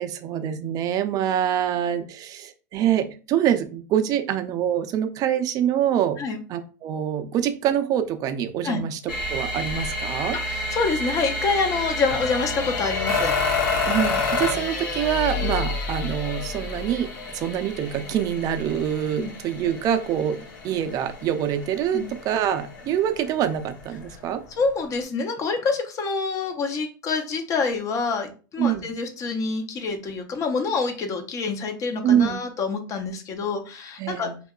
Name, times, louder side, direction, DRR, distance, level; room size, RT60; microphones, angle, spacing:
voice 1, 0.0-6.2 6.5-9.0 9.3-10.4 13.9-24.4 28.6-28.9 32.0-32.4 34.0-34.4, right 10 dB, 35° right, 8 dB, 0.4 m, -25 dB
sound 1, 9.1-24.1 24.6-24.7, left 3 dB, 85° left, 0.8 m, -29 dB
voice 2, 10.5-13.3 19.2-19.3 21.9-22.1 24.6-34.3, left 4 dB, 30° left, 6 dB, 0.5 m, -26 dB
2.7 x 2.3 x 2.2 m, 0.36 s
supercardioid pair, 125°, 10 cm